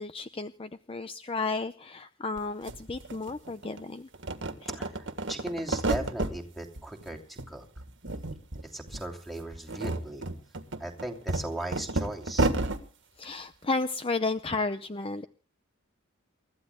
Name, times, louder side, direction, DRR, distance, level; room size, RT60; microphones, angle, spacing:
voice 1, 0.0-4.1 4.6-4.7 13.2-15.3, left 3 dB, 25° left, 10 dB, 0.6 m, -33 dB
sound 1, 2.4-2.5 2.7-3.8 4.1-6.4 6.8-7.5 7.8-8.6 8.9-9.0 9.5-12.8, right 2 dB, 60° right, 1.7 m, -31 dB
voice 2, 4.7-7.7 8.5-10.3 10.8-12.5, right 1 dB, ahead, 3 dB, 2.8 m, -37 dB
29.0 x 14.5 x 2.2 m, 0.37 s
head